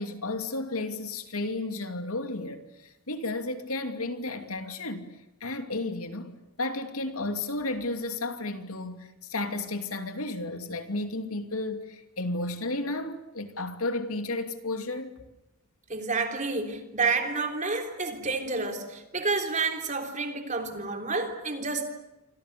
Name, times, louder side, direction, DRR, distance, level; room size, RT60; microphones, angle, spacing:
voice 1, 0.0-5.1 5.4-15.2, left 2 dB, 80° left, 2.8 m, -33 dB
voice 2, 15.9-21.9, right 4 dB, 35° right, 3.5 m, -29 dB
29.0 x 25.5 x 6.9 m
head